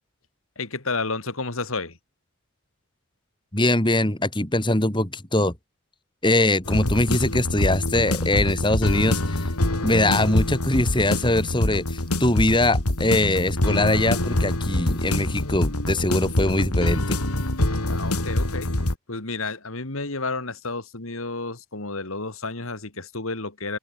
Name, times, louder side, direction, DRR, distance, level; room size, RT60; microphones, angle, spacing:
voice 1, 0.6-2.0 17.8-18.7 19.1-23.8, left 3 dB, 70° left, 2.8 m, -31 dB
voice 2, 3.5-5.5 6.2-9.4 9.8-17.2, left 1 dB, 20° left, 2.8 m, -22 dB
sound 1, 6.7-18.9, left 1 dB, 90° left, 2.9 m, -25 dB
head